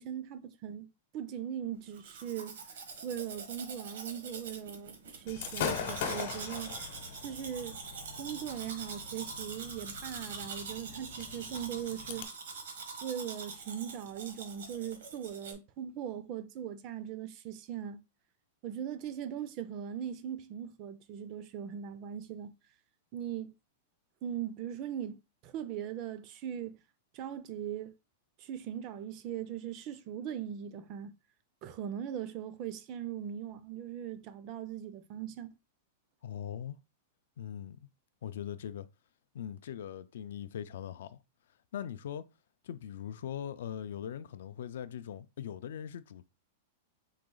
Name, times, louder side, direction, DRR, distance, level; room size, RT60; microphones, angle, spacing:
voice 1, 0.0-2.6 3.0-6.7 7.2-7.8 8.2-12.3 13.0-18.0 18.6-22.5 23.1-23.5 24.2-26.8 27.1-27.9 28.4-31.1 31.6-35.5, right 9 dB, 30° right, 0.4 m, -40 dB
Domestic sounds home sounds, 1.9-15.5, right 4 dB, 85° right, 1.1 m, -44 dB
Gunshot gunfire / Fireworks, 5.3-12.2, left 6 dB, 50° left, 0.9 m, -41 dB
voice 2, 36.2-36.8 37.4-37.9 38.2-38.9 39.3-41.2 41.7-42.3 42.6-46.3, left 9 dB, 70° left, 0.4 m, -41 dB
4.0 x 2.8 x 3.8 m
supercardioid pair, 170°, 0 cm